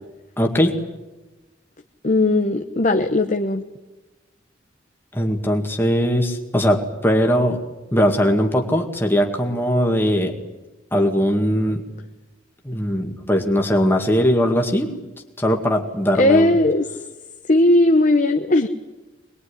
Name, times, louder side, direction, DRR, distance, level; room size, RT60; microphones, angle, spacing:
voice 1, 0.4-0.8 5.1-7.6 7.9-10.3 10.9-11.8 12.6-14.9 15.4-16.5, equal, 10° left, 2 dB, 2.1 m, -20 dB
voice 2, 2.0-3.6 16.2-16.9 17.5-18.7, left 2 dB, 40° left, 6 dB, 1.0 m, -17 dB
23.0 x 21.0 x 10.0 m, 1.1 s
head